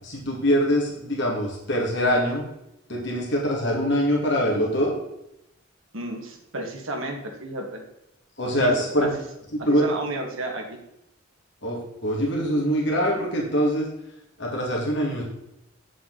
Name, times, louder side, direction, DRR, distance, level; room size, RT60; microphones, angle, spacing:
voice 1, 0.0-2.4 2.9-4.9 8.4-9.1 9.5-9.9 11.6-13.9 14.4-15.2, equal, 55° left, -2 dB, 2.4 m, -23 dB
voice 2, 5.9-7.8 8.6-8.7 9.0-9.1 9.6-10.8, right 2 dB, 75° right, 2 dB, 2.0 m, -32 dB
8.6 x 7.5 x 4.1 m, 0.83 s
head